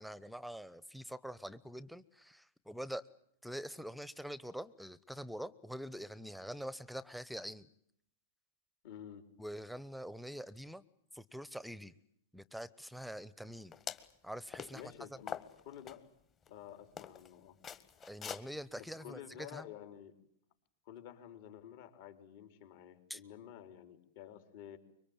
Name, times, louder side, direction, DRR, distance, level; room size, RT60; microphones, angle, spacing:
voice 1, 0.0-3.1 3.4-7.7 9.4-10.8 11.1-11.9 12.3-13.7 14.2-14.8 18.0-19.6 23.1-23.2, equal, ahead, 22 dB, 1.0 m, -45 dB
voice 2, 8.8-9.3 14.7-15.4 15.6-16.0 16.5-17.6 18.8-20.1 20.9-24.8, left 10 dB, 50° left, 7 dB, 4.0 m, -51 dB
sound 1, 13.7-14.1 14.5-14.8 15.3-16.0 16.5-16.6 17.0-17.3 17.6-18.4, left 7 dB, 25° left, 1.8 m, -43 dB
25.0 x 23.5 x 8.9 m, 0.70 s
figure-of-eight pair, 100°, 0 cm